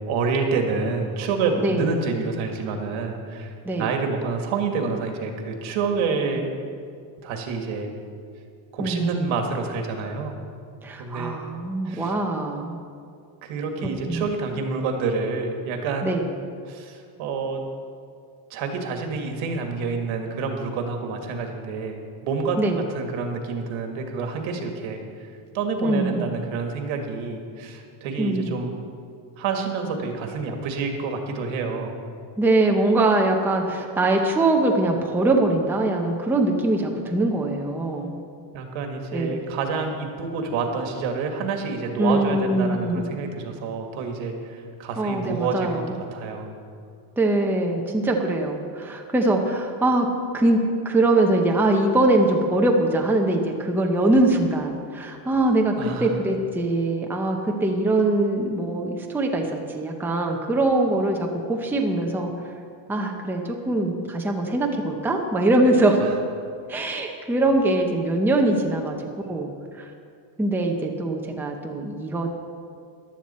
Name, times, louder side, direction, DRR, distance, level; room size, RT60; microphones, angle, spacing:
voice 1, 0.1-6.4 7.2-7.9 8.7-10.4 11.0-11.4 11.9-12.1 13.4-16.1 16.7-17.6 18.5-22.6 22.9-28.7 29.4-31.9 38.5-45.8 46.1-46.5 55.8-56.1 66.0-66.1, right 4 dB, 75° right, 3 dB, 1.9 m, -28 dB
voice 2, 1.6-1.9 3.6-3.9 6.3-6.4 8.8-9.1 10.8-12.8 13.8-14.3 16.0-16.2 22.6-22.8 25.8-26.3 28.2-28.5 32.4-38.1 39.1-39.4 42.0-43.1 45.0-46.0 47.2-50.1 50.3-50.6 50.8-62.3 62.9-66.1 66.7-69.0 69.3-69.9 70.4-72.3, right 2 dB, 5° right, 1 dB, 0.7 m, -22 dB
14.5 x 11.5 x 4.3 m, 2.3 s
cardioid pair, 165°, 48 cm